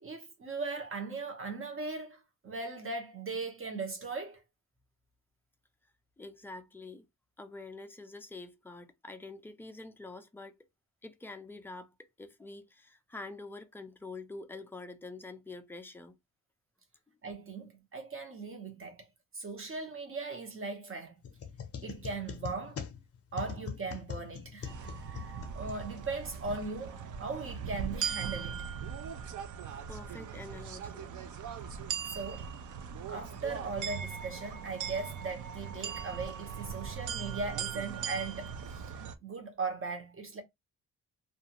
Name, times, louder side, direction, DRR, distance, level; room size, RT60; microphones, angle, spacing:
voice 1, 0.0-4.4 17.2-19.1 19.3-21.2 21.8-22.8 23.3-28.7 32.1-32.5 33.1-40.4, right 4 dB, 35° right, 0.9 m, -39 dB
voice 2, 6.2-7.1 7.4-10.6 11.0-16.2 29.9-31.2, left 3 dB, 5° left, 0.3 m, -46 dB
sound 1, 21.2-26.3, left 7 dB, 40° left, 0.6 m, -43 dB
sound 2, 24.6-39.1, right 7 dB, 60° right, 0.5 m, -39 dB
2.5 x 2.4 x 2.8 m
cardioid pair, 140°, 35 cm